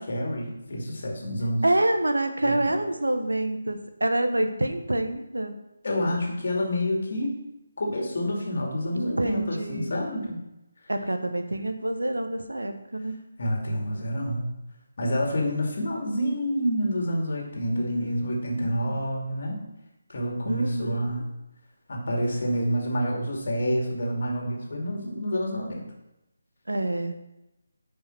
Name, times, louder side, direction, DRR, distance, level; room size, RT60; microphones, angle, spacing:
voice 1, 0.0-1.6 2.4-2.7 5.8-7.3 7.8-10.4 13.4-14.5 15.0-19.6 20.1-21.2 21.9-25.8, equal, 50° left, 0 dB, 2.4 m, -28 dB
voice 2, 1.6-5.5 8.9-9.9 10.9-13.2 17.7-19.0 20.4-21.1 26.7-27.1, right 1 dB, 75° right, 7 dB, 1.1 m, -27 dB
10.0 x 5.5 x 4.5 m, 0.92 s
figure-of-eight pair, 155°, 0 cm